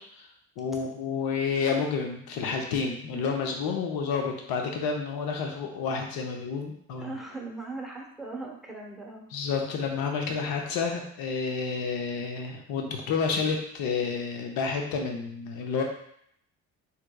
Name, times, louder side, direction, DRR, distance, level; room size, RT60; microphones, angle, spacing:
voice 1, 0.6-7.2 9.3-15.8, left 5 dB, 70° left, 2 dB, 0.7 m, -30 dB
voice 2, 7.0-9.3, right 3 dB, ahead, -2 dB, 0.9 m, -39 dB
3.4 x 2.9 x 2.2 m, 0.70 s
hypercardioid pair, 60°, 38 cm